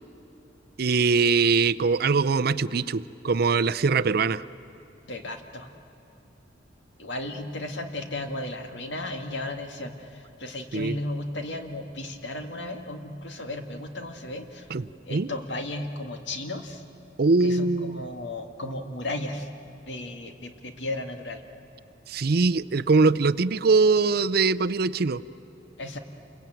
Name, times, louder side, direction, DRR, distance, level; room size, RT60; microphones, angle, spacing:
voice 1, 0.8-4.4 10.7-11.0 14.7-14.8 15.1-15.3 17.2-18.0 22.1-25.2, right 4 dB, 55° right, 14 dB, 0.5 m, -22 dB
voice 2, 5.1-5.7 7.0-14.7 15.1-16.8 17.4-19.5 19.9-21.4 25.8-26.0, left 1 dB, 75° left, 5 dB, 2.1 m, -34 dB
28.0 x 22.5 x 9.1 m, 3.0 s
head